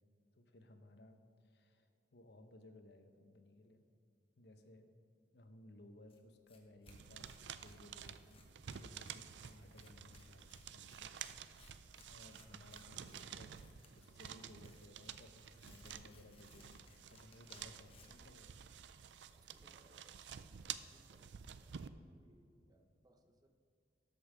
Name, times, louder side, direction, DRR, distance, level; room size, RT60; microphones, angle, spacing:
voice 1, 0.3-3.8 4.4-4.9 5.3-8.5 8.7-11.1 11.5-13.6 14.0-16.8 17.1-18.6, left 1 dB, 65° left, 6 dB, 0.8 m, -60 dB
Tearing, 6.1-6.2 6.5-6.6 6.8-18.3, left 2 dB, 30° left, 1.1 m, -64 dB
sound 1, 6.9-21.9, right 8 dB, 75° right, 0.4 m, -51 dB
voice 2, 19.2-23.5, right 1 dB, 20° right, 6 dB, 0.6 m, -70 dB
13.0 x 5.5 x 5.0 m, 2.5 s
head